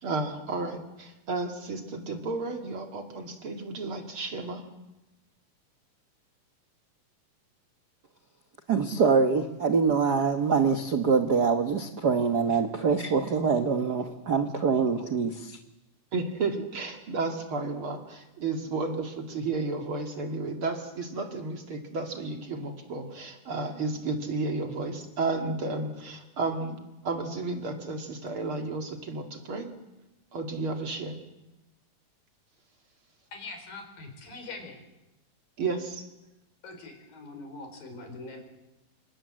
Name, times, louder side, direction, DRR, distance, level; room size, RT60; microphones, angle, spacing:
voice 1, 0.0-4.6 16.1-26.8 27.0-29.7 30.3-31.2 35.6-36.0, right 3 dB, 40° right, 5 dB, 2.7 m, -32 dB
voice 2, 8.7-15.6, right 5 dB, 75° right, 7 dB, 0.9 m, -24 dB
voice 3, 33.3-34.8 36.6-38.4, left 3 dB, 90° left, 5 dB, 6.4 m, -42 dB
27.5 x 25.5 x 7.6 m, 0.96 s
omnidirectional pair, 3.9 m